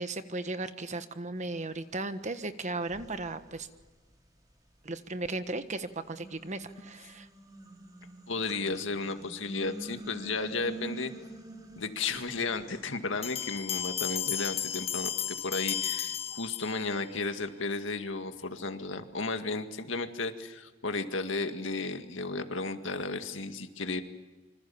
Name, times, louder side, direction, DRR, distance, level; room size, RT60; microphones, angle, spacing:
voice 1, 0.0-3.7 4.8-7.3, right 2 dB, 40° right, 10 dB, 1.3 m, -36 dB
sound 1, 2.1-2.2 2.8-5.1 5.7-17.0, right 2 dB, 20° right, 3.4 m, -48 dB
voice 2, 8.3-11.1 11.8-24.0, left 3 dB, 80° left, 7 dB, 2.0 m, -34 dB
sound 2, 13.2-17.0, left 10 dB, 30° left, 1.1 m, -34 dB
26.0 x 25.5 x 7.2 m, 1.2 s
head